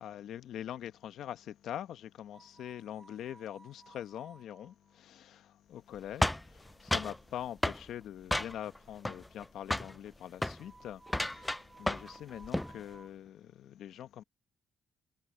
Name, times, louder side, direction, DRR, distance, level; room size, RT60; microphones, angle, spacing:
voice 1, 0.0-14.2, left 11 dB, 75° left, 1.0 m, -44 dB
sound 1, 2.3-5.0 8.9-9.0 10.5-13.1, right 3 dB, 20° right, 1.1 m, -58 dB
sound 2, 6.2-7.2 7.6-7.8 8.3-8.8 9.0-9.5 9.7-10.0 10.3-10.6 11.1-12.2 12.4-12.7, left 1 dB, 10° left, 0.4 m, -32 dB
cardioid pair, 90°, 0 cm